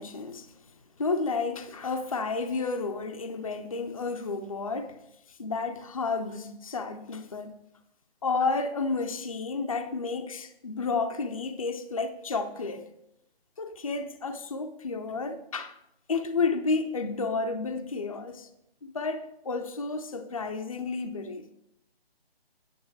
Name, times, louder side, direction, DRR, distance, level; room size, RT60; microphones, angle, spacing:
voice 1, 0.0-5.0 5.3-7.5 8.2-12.9 13.6-15.8 16.1-18.5 18.8-21.5, left 4 dB, 35° left, 0.5 m, -31 dB
9.6 x 6.7 x 4.6 m
figure-of-eight pair, 155°, 31 cm